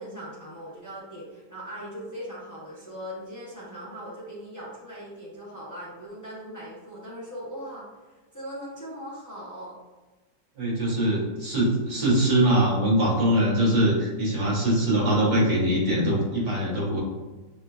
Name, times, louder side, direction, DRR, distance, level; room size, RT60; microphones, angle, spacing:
voice 1, 0.0-9.8, equal, 20° left, -6 dB, 0.5 m, -40 dB
voice 2, 10.6-17.0, right 1 dB, 55° right, -6 dB, 2.1 m, -22 dB
6.0 x 3.2 x 2.4 m, 1.2 s
omnidirectional pair, 1.9 m